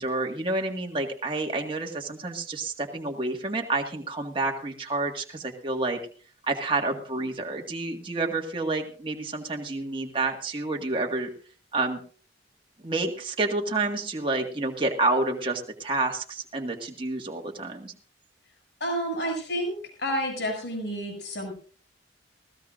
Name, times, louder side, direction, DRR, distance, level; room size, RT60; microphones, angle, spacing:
voice 1, 0.0-6.0 6.5-11.3 11.7-12.0 12.8-17.9, right 2 dB, 25° right, 1 dB, 1.8 m, -29 dB
voice 2, 18.8-19.7 20.0-21.5, equal, 65° left, 2 dB, 6.9 m, -29 dB
20.5 x 16.5 x 2.6 m, 0.42 s
head